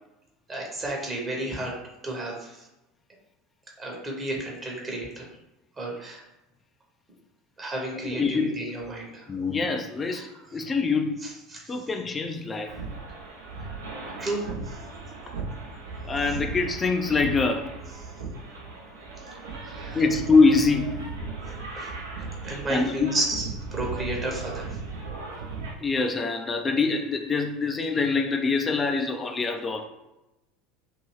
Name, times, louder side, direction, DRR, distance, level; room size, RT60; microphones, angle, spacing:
voice 1, 0.5-1.7 2.0-2.7 3.8-5.3 5.8-6.2 7.6-9.3 10.1-10.3 11.5-11.8 14.2-14.8 19.5-20.0 21.8-22.0 22.4-24.7, right 1 dB, 25° right, -1 dB, 0.9 m, -32 dB
voice 2, 8.0-8.6 9.3-11.2 11.7-12.8 16.0-17.8 19.9-21.0 22.7-23.2 25.8-29.9, left 4 dB, 20° left, 5 dB, 0.4 m, -24 dB
sound 1, 12.6-25.7, right 3 dB, 70° right, 0.6 m, -37 dB
2.7 x 2.6 x 3.1 m, 0.97 s
figure-of-eight pair, 70°, 0 cm